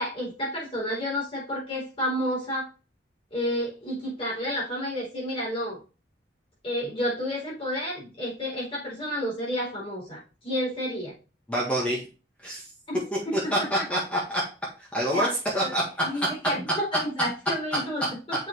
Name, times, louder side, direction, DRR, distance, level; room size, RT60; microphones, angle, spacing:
voice 1, 0.0-2.7 3.3-5.8 6.6-11.2 12.9-13.9 15.1-15.3 15.6-18.5, equal, 30° left, -5 dB, 3.8 m, -31 dB
voice 2, 11.5-12.0 12.4-12.6 13.5-14.4 14.9-15.3 15.5-15.8, equal, 5° left, -4 dB, 1.7 m, -26 dB
7.4 x 5.5 x 3.2 m, 0.33 s
head